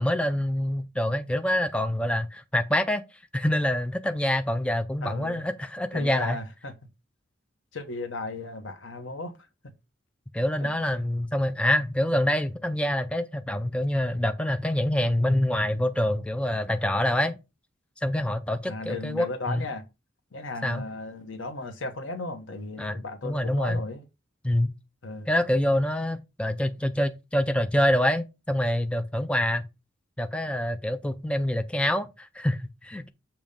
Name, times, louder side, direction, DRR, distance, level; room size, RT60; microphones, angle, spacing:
voice 1, 0.0-3.0 3.3-6.4 10.3-17.4 18.0-19.7 20.6-20.8 22.8-23.8 24.4-24.7 25.3-29.6 30.2-33.1, left 1 dB, 5° left, 0.4 m, -26 dB
voice 2, 5.0-5.4 5.9-6.7 7.7-9.3 10.6-10.7 18.7-19.8 20.3-24.0 25.0-25.3, left 3 dB, 80° left, 1.1 m, -35 dB
7.0 x 3.0 x 5.1 m
head